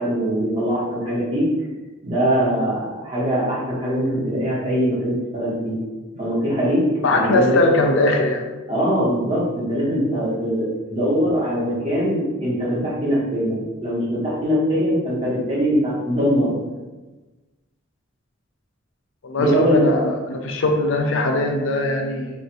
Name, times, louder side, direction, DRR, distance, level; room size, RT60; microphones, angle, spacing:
voice 1, 0.0-1.5 2.0-5.8 6.2-6.8 7.1-7.6 8.7-16.5 19.4-19.8, equal, 30° right, -8 dB, 1.4 m, -22 dB
voice 2, 7.0-8.5 19.2-22.3, left 2 dB, 65° left, 3 dB, 0.5 m, -20 dB
3.2 x 2.6 x 4.5 m, 1.2 s
head